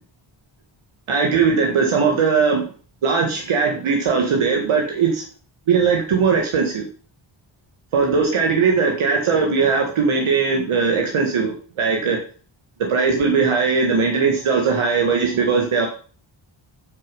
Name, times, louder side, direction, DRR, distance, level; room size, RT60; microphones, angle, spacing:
voice 1, 1.1-2.6 3.0-5.2 5.7-6.9 7.9-12.2 12.8-15.9, right 5 dB, 80° right, 1 dB, 1.8 m, -19 dB
9.1 x 6.2 x 5.3 m, 0.40 s
wide cardioid pair, 140°, 49 cm